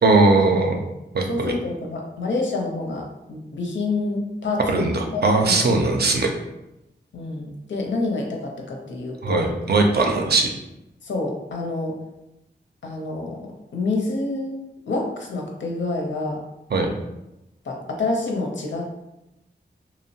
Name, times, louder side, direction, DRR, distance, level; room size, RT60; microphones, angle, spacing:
voice 1, 0.0-0.8 1.1-1.5 4.7-6.3 9.2-10.6 16.7-17.0, right 3 dB, 60° right, 2 dB, 0.4 m, -19 dB
voice 2, 1.3-5.6 7.1-9.5 10.3-10.4 11.0-12.0 12.8-14.6 14.9-16.4 17.6-19.0, left 2 dB, 85° left, 0 dB, 0.6 m, -28 dB
2.8 x 2.0 x 2.7 m, 0.92 s
wide cardioid pair, 75°, 19 cm